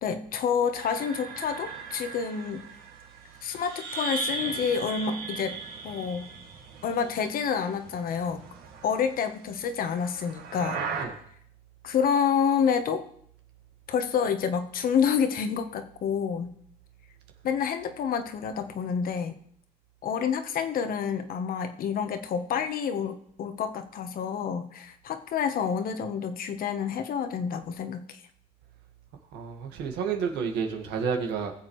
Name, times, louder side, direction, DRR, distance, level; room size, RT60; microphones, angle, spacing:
voice 1, 0.0-2.6 3.4-5.6 5.8-6.3 6.8-8.4 8.8-11.0 11.8-13.0 13.9-16.5 17.4-19.3 20.0-28.2, left 7 dB, 60° left, 8 dB, 1.1 m, -28 dB
sound 1, 0.7-7.4 7.7-9.1 10.0-11.1, right 4 dB, 70° right, 2.1 m, -37 dB
voice 2, 29.3-31.5, right 6 dB, 85° right, 4 dB, 1.7 m, -30 dB
20.0 x 7.3 x 3.2 m, 0.65 s
cardioid pair, 110°, 17 cm